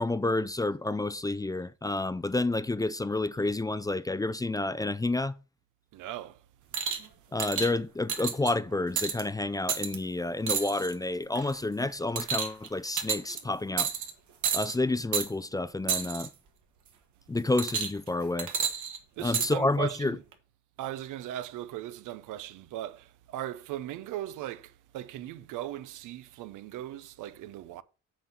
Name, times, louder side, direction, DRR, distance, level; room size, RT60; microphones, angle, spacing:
voice 1, 0.0-5.4 7.3-13.9 14.5-16.3 17.3-18.5 19.2-20.2, left 2 dB, 10° left, 0.4 m, -29 dB
voice 2, 5.9-6.4 19.2-20.2 20.8-27.8, right 13 dB, 90° right, 0.7 m, -38 dB
sound 1, 6.7-7.1 7.4-7.7 8.1-8.5 9.0-9.2 9.7-10.0 10.5-10.9 11.3-11.6 12.2-12.7 13.0-13.4 13.8-14.1 14.4-14.7 15.1-15.3 15.9-16.3 17.6-18.1 18.4-19.5 20.3-20.4, right 7 dB, 70° right, 1.8 m, -30 dB
7.4 x 4.5 x 6.9 m
cardioid pair, 90°, 30 cm